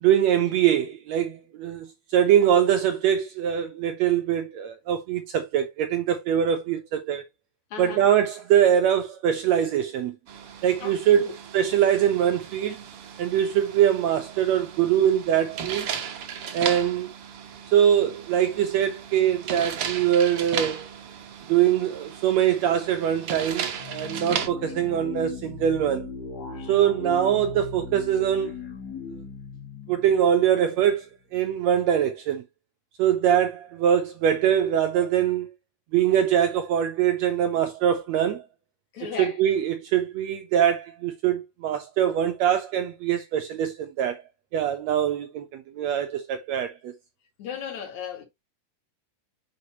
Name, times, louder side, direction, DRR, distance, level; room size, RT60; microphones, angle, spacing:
voice 1, 0.0-7.2 7.8-10.2 10.6-12.8 13.2-15.9 16.5-17.1 17.7-20.9 21.5-26.1 26.7-28.5 29.9-32.4 33.0-35.5 35.9-38.4 39.2-44.2 44.5-46.9, right 9 dB, 75° right, 1.6 m, -23 dB
voice 2, 7.7-8.1 10.8-11.3 38.9-39.4 47.4-48.2, left 7 dB, 65° left, 3.3 m, -36 dB
sound 1, 10.3-24.5, right 8 dB, 55° right, 1.7 m, -36 dB
sound 2, 23.8-31.0, left 3 dB, 40° left, 1.5 m, -38 dB
9.7 x 5.1 x 2.9 m
omnidirectional pair, 3.7 m